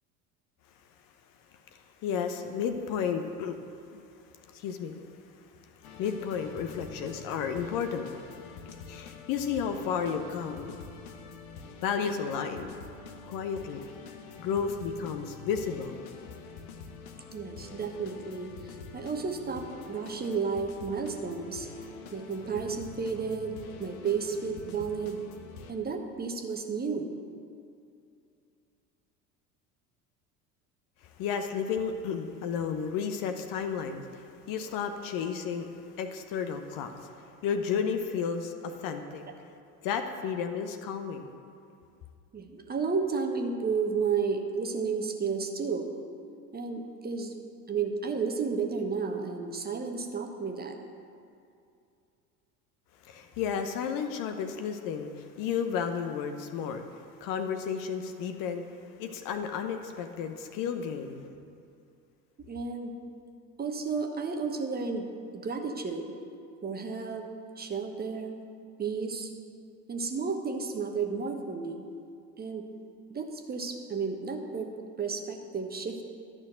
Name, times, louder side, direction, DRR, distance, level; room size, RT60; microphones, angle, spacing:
voice 1, 1.7-3.6 3.9-4.0 4.5-5.0 6.0-8.1 8.9-10.7 11.8-12.8 13.3-13.8 14.4-15.9 31.2-35.7 36.0-37.1 37.4-39.2 39.8-41.3 53.1-56.8 57.2-58.6 59.0-61.4, left 7 dB, 45° left, 7 dB, 0.9 m, -32 dB
sound 1, 5.8-25.7, left 5 dB, 60° left, 1.2 m, -46 dB
voice 2, 17.3-21.7 22.1-25.2 25.7-27.1 38.6-38.8 42.3-45.9 46.5-47.3 47.7-50.8 62.4-62.9 63.6-65.1 65.3-66.1 66.6-67.3 67.6-68.4 68.8-69.3 69.9-71.8 72.4-72.6 73.1-74.7 75.0-76.0, right 5 dB, 20° right, 4 dB, 1.1 m, -32 dB
12.0 x 6.3 x 7.6 m, 2.5 s
figure-of-eight pair, 70°, 48 cm